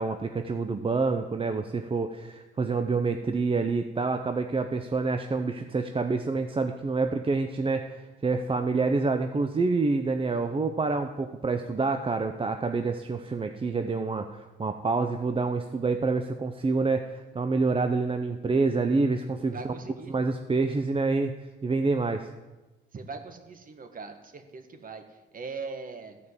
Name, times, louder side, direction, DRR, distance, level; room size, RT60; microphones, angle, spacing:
voice 1, 0.0-19.7 20.1-21.3 21.6-22.3, right 3 dB, 25° right, 7 dB, 0.7 m, -27 dB
voice 2, 19.5-20.1 22.9-26.2, right 4 dB, 45° right, 7 dB, 1.6 m, -40 dB
13.5 x 5.3 x 8.1 m, 1.1 s
cardioid pair, 90°, 20 cm